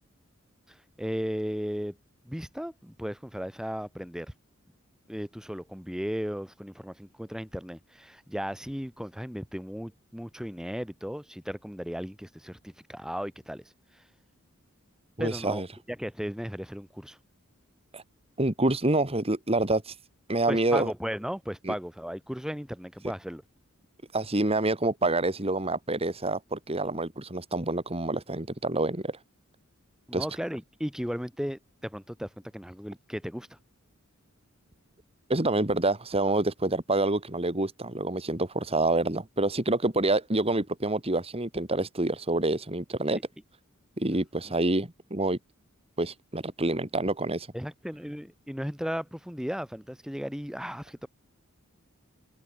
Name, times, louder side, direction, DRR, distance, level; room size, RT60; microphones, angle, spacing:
voice 1, 0.7-1.9 2.2-4.3 5.1-13.6 15.2-17.2 20.5-23.4 30.1-33.6 44.1-44.2 47.5-51.1, equal, 5° right, 4.9 m, -35 dB
voice 2, 15.2-15.7 17.9-18.0 18.4-20.0 20.3-20.9 21.6-21.7 24.1-29.2 30.1-30.3 35.3-43.2 44.0-45.4 46.0-47.5, right 2 dB, 30° right, 2.4 m, -27 dB
open air
head